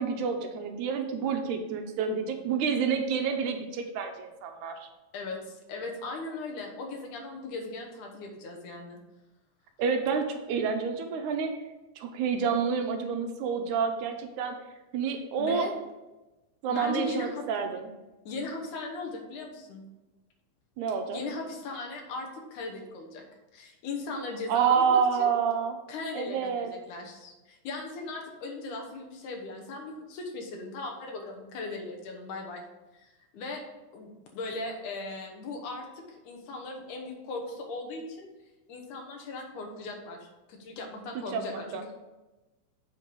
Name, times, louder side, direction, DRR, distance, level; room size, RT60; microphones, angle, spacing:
voice 1, 0.0-4.9 9.8-11.5 12.0-14.6 14.9-15.7 16.6-17.9 20.8-21.2 24.5-25.8 26.1-26.7 41.3-41.9, right 6 dB, 80° right, 5 dB, 2.1 m, -28 dB
voice 2, 5.1-9.0 15.4-15.7 16.7-17.4 18.3-19.8 21.1-23.2 23.5-25.3 25.9-32.6 32.9-33.6 33.9-35.9 36.2-38.3 38.7-41.8, left 3 dB, 75° left, 1 dB, 2.6 m, -38 dB
8.0 x 4.5 x 5.3 m, 1.1 s
omnidirectional pair, 3.6 m